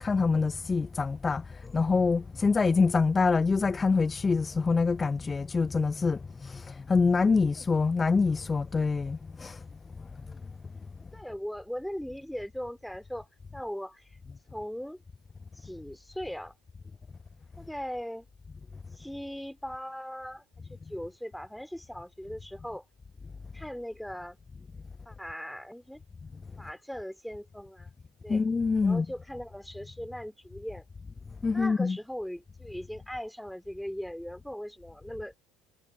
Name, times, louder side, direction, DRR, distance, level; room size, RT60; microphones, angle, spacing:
voice 1, 0.0-9.7 10.0-10.4 28.3-29.1 31.4-32.0, left 4 dB, 20° left, 0.5 m, -26 dB
voice 2, 11.1-14.2 14.5-15.0 15.5-16.5 17.6-18.3 18.9-20.4 20.7-22.8 23.5-24.4 25.1-26.0 26.6-27.9 28.2-28.4 28.8-30.9 31.5-35.4, equal, ahead, 4.1 m, -39 dB
figure-of-eight pair, 70°, 0 cm